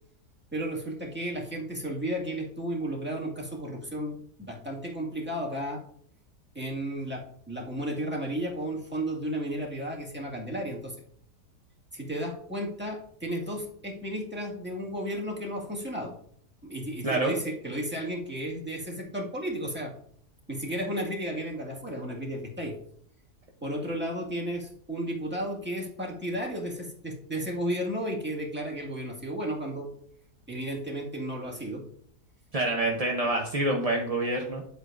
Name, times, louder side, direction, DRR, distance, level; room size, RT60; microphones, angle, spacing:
voice 1, 0.5-5.8 6.5-11.0 11.9-16.1 16.6-19.9 20.5-22.7 23.6-29.9 30.5-31.8, equal, 5° right, -3 dB, 1.8 m, -33 dB
voice 2, 17.0-17.3 32.5-34.6, right 2 dB, 35° right, 0 dB, 0.6 m, -27 dB
9.4 x 8.0 x 2.5 m, 0.65 s
omnidirectional pair, 1.7 m